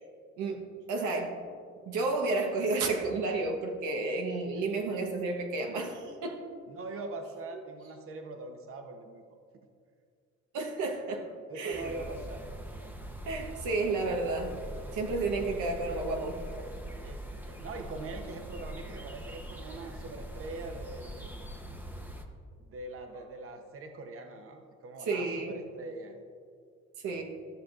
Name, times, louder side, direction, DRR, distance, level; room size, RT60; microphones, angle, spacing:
voice 1, 0.9-1.3 1.9-6.4 10.5-11.9 13.2-14.5 14.9-16.7 25.1-25.5 27.0-27.2, right 3 dB, 90° right, 2 dB, 1.1 m, -31 dB
voice 2, 6.7-9.7 11.5-12.5 15.4-15.8 17.0-21.4 22.6-26.2, right 2 dB, 45° right, 5 dB, 0.8 m, -43 dB
sound 1, 11.7-22.2, right 1 dB, 5° right, 0.7 m, -42 dB
14.0 x 6.2 x 2.4 m, 2.2 s
cardioid pair, 90°, 30 cm